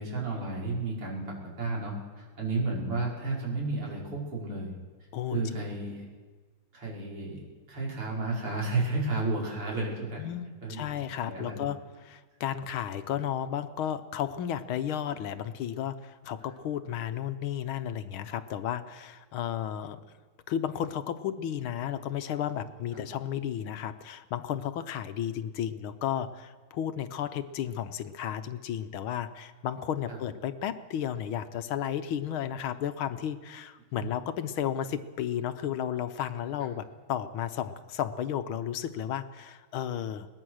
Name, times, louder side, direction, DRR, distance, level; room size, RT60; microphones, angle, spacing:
voice 1, 0.0-4.7 5.3-6.0 6.7-7.4 7.7-10.2 10.6-10.9 11.2-11.6 22.9-23.0 30.1-30.2 34.0-34.1, right 3 dB, 80° right, -4 dB, 6.1 m, -32 dB
voice 2, 10.2-20.0 20.5-40.3, left 10 dB, 75° left, 11 dB, 1.7 m, -33 dB
22.0 x 19.5 x 6.4 m, 1.4 s
omnidirectional pair, 2.4 m